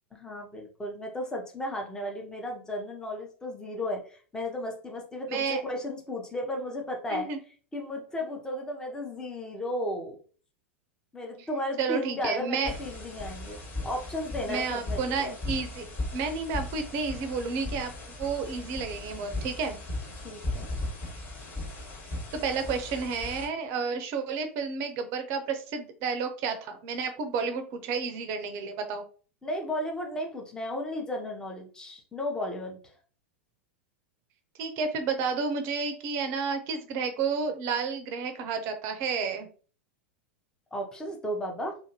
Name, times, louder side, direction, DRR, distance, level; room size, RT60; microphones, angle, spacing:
voice 1, 0.1-7.3 7.7-10.2 11.1-13.6 13.8-15.4 20.2-20.7 29.4-32.8 40.7-41.8, left 1 dB, 10° left, 1 dB, 0.7 m, -34 dB
voice 2, 5.3-5.6 7.1-7.4 11.8-12.7 14.5-15.9 16.1-17.9 18.2-19.8 22.3-29.0 34.6-39.5, right 5 dB, 40° right, 8 dB, 0.5 m, -31 dB
sound 1, 12.7-23.5, left 2 dB, 30° left, 1.3 m, -37 dB
2.6 x 2.5 x 2.8 m, 0.41 s
figure-of-eight pair, 95°, 7 cm